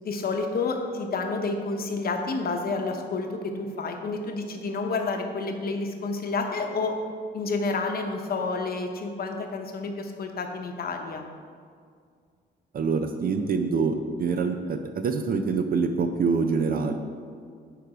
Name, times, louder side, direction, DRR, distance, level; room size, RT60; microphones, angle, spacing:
voice 1, 0.0-7.0 7.3-11.3, left 3 dB, 50° left, 4 dB, 0.9 m, -29 dB
voice 2, 12.7-16.9, right 5 dB, 45° right, 7 dB, 0.5 m, -25 dB
8.9 x 3.4 x 4.9 m, 2.1 s
cardioid pair, 90°, 20 cm